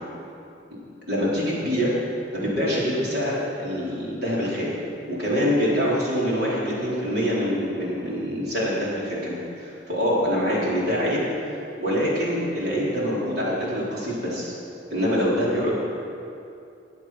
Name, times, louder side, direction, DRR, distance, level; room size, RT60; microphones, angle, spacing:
voice 1, 1.1-2.0 2.3-4.8 5.1-14.5 14.9-15.7, equal, 60° right, -6 dB, 4.3 m, -25 dB
20.5 x 8.1 x 6.1 m, 2.6 s
head